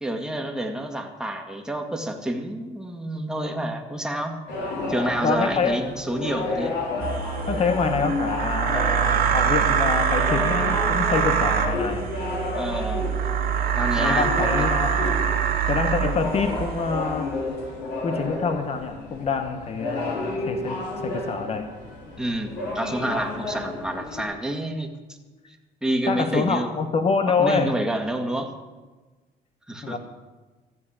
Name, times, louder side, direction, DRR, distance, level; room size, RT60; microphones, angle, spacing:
voice 1, 0.0-4.4 4.9-6.8 12.5-13.0 13.7-14.7 22.2-24.9 25.8-26.7 27.4-28.5 29.7-30.0, right 1 dB, 5° right, 3 dB, 1.8 m, -28 dB
sound 1, 4.5-24.2, left 2 dB, 85° left, 4.0 m, -31 dB
voice 2, 5.2-5.8 7.5-12.1 14.0-14.9 15.7-17.4 18.0-21.7 26.1-27.7 29.8-30.0, left 5 dB, 35° left, 7 dB, 1.2 m, -26 dB
sound 2, 7.0-17.2, right 8 dB, 65° right, 2.3 m, -24 dB
14.0 x 7.4 x 8.8 m, 1.3 s
cardioid pair, 110°, 17 cm